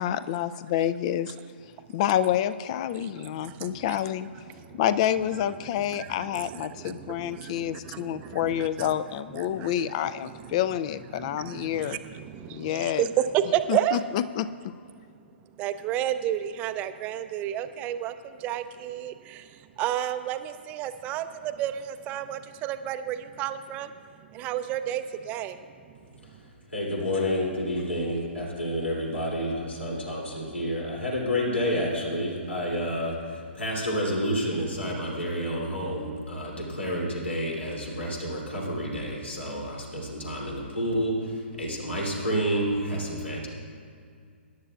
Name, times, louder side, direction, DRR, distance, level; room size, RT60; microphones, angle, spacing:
voice 1, 0.0-1.3 1.9-4.3 4.7-12.0 12.5-13.1 13.7-14.5, left 11 dB, 35° left, 14 dB, 0.4 m, -28 dB
voice 2, 3.4-4.0 4.5-4.8 5.9-9.0 9.3-9.9 10.2-10.6 11.1-14.0 15.6-19.5 19.8-23.9 24.3-25.6, right 11 dB, 25° right, 10 dB, 0.5 m, -31 dB
voice 3, 26.3-43.5, equal, 75° left, -3 dB, 3.0 m, -29 dB
23.5 x 11.0 x 2.4 m, 2.2 s
figure-of-eight pair, 120°, 6 cm